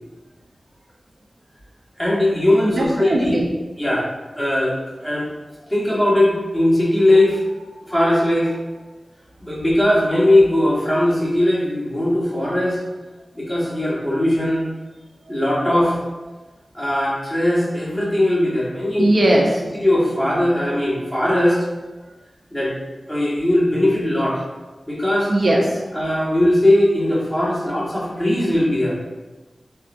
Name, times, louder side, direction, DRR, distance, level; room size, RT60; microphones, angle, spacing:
voice 1, 2.0-3.3 3.8-4.1 4.3-5.3 5.7-7.4 7.9-8.5 9.4-12.8 13.3-14.6 15.3-16.0 16.7-19.1 19.7-21.6 22.5-22.7 23.1-24.4 24.9-25.3 25.9-29.0, left 1 dB, 15° left, -8 dB, 1.4 m, -19 dB
voice 2, 2.6-3.5 15.3-15.4 19.0-19.6 25.3-25.9, right 1 dB, 65° right, -2 dB, 0.5 m, -19 dB
3.7 x 2.3 x 2.6 m, 1.2 s
cardioid pair, 40°, 0 cm